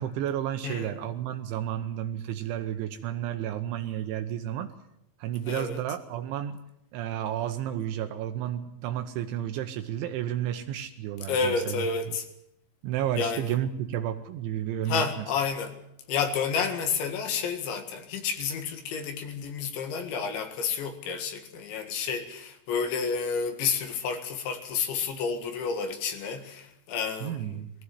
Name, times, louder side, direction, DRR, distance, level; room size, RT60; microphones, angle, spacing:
voice 1, 0.0-4.7 5.2-6.6 6.9-11.8 12.8-15.3 27.2-27.7, right 11 dB, 80° right, 3.2 m, -32 dB
voice 2, 0.6-1.0 5.5-5.8 11.3-12.3 13.2-13.5 14.9-15.8 16.1-27.6, left 5 dB, 70° left, 4.0 m, -30 dB
20.5 x 15.5 x 9.7 m
omnidirectional pair, 5.6 m